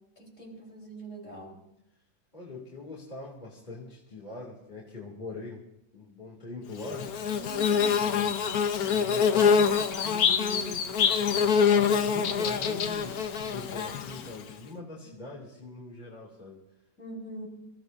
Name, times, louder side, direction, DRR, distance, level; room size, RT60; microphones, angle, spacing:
voice 1, 0.2-1.6 7.3-8.1 15.0-15.1 17.0-17.5, right 2 dB, 50° left, -3 dB, 4.7 m, -43 dB
voice 2, 2.3-5.6 5.9-7.1 8.0-8.3 8.8-10.9 11.7-13.2 13.5-16.6, left 3 dB, 30° left, -4 dB, 2.8 m, -42 dB
Bird / Buzz, 6.8-14.5, left 6 dB, 75° left, 1.4 m, -25 dB
26.5 x 15.5 x 2.7 m, 0.82 s
omnidirectional pair, 1.6 m